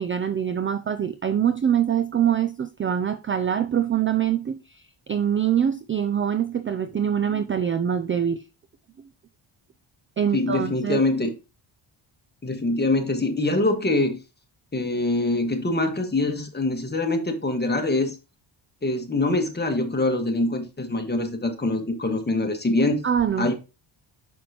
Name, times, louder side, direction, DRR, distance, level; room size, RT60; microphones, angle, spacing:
voice 1, 0.0-4.8 5.1-8.5 10.2-11.0 23.0-23.5, right 9 dB, 30° right, 0.4 m, -24 dB
voice 2, 10.3-11.3 12.4-14.2 14.7-18.2 18.8-23.0 23.4-23.5, left 2 dB, 20° left, 1.6 m, -24 dB
6.3 x 5.9 x 2.9 m
cardioid pair, 80°, 47 cm